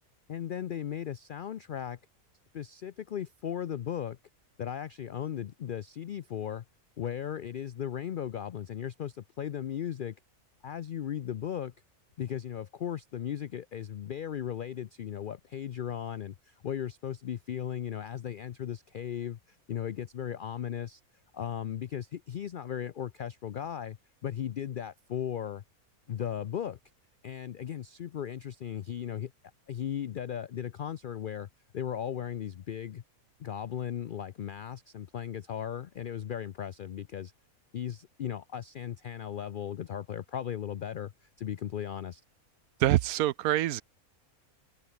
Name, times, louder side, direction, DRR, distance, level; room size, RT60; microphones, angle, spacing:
voice 1, 0.3-2.0 2.5-4.2 4.6-6.6 7.0-10.2 10.6-11.7 12.2-21.0 21.3-24.0 24.2-25.6 26.1-26.8 27.2-29.3 29.7-31.5 31.7-33.0 33.4-37.3 37.7-42.2, left 9 dB, 85° left, 0.4 m, -36 dB
voice 2, 42.8-43.8, right 14 dB, 80° right, 1.1 m, -25 dB
open air
omnidirectional pair, 1.5 m